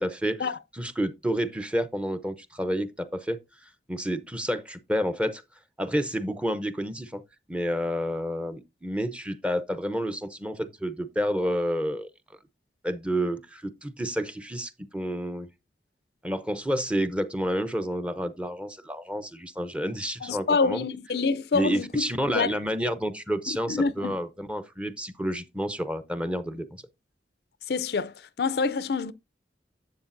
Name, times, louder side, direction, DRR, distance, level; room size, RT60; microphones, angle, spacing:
voice 1, 0.0-0.5 0.7-3.4 3.9-5.4 5.8-7.2 7.5-12.1 12.8-15.5 16.2-20.8 21.5-26.8, equal, 5° right, 0.7 m, -29 dB
voice 2, 20.2-22.5 23.5-24.1 27.7-29.1, left 4 dB, 60° left, 0.5 m, -27 dB
11.5 x 7.6 x 2.6 m
head